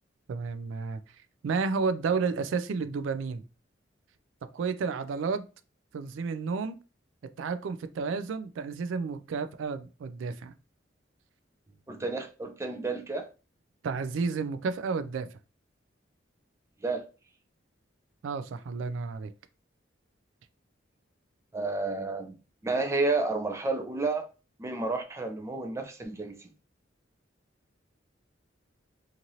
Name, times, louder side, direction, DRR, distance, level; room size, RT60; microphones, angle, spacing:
voice 1, 0.3-1.0 1.4-3.4 4.5-5.4 5.9-6.8 7.4-10.5 13.8-15.3 18.2-19.3, right 4 dB, 85° right, 0.3 m, -31 dB
voice 2, 11.9-13.3 16.8-17.0 21.5-22.3 22.6-24.3 24.6-26.4, right 3 dB, 15° right, 0.4 m, -30 dB
2.9 x 2.5 x 2.7 m
head